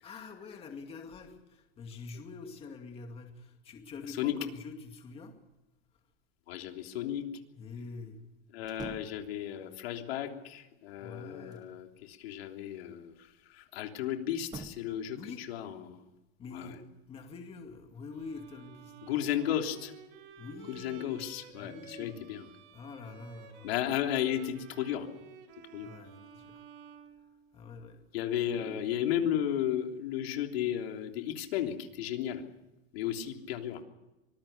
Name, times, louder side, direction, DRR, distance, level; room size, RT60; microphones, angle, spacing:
voice 1, 0.0-5.4 7.5-8.2 11.0-11.7 15.1-15.5 16.4-19.4 20.4-21.3 21.6-22.2 22.7-23.9 25.8-26.7 27.5-28.0 28.5-28.9, left 4 dB, 20° left, 4 dB, 2.3 m, -46 dB
voice 2, 6.5-7.2 8.5-13.1 13.5-15.2 15.5-16.1 16.5-16.7 19.0-19.9 20.7-22.5 23.6-25.1 25.7-25.9 28.1-32.4 32.9-33.8, left 10 dB, 80° left, 3 dB, 3.4 m, -34 dB
sound 1, 8.6-9.3 10.9-11.8 14.3-15.0, right 4 dB, 10° right, 1.2 m, -46 dB
Bowed string instrument, 18.1-27.8, right 8 dB, 60° right, 4.0 m, -53 dB
25.0 x 20.5 x 6.8 m, 1.0 s
supercardioid pair, 170°, 30 cm